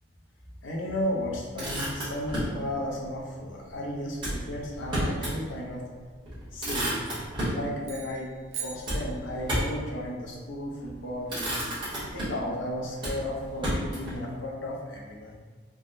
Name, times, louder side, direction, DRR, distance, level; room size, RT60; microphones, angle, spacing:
voice 1, 0.6-5.8 6.5-7.1 7.4-8.3 8.6-11.7 12.1-15.4, left 1 dB, 75° left, -2 dB, 0.6 m, -34 dB
Motor vehicle (road), 1.3-2.6 4.2-5.4 5.8-5.9 6.2-7.6 8.8-9.8 10.7-10.9 11.3-12.5 13.0-14.2, right 1 dB, 25° right, 0.9 m, -31 dB
sound 1, 7.8-9.7, right 8 dB, 85° right, 0.6 m, -41 dB
3.4 x 2.1 x 2.5 m, 1.5 s
head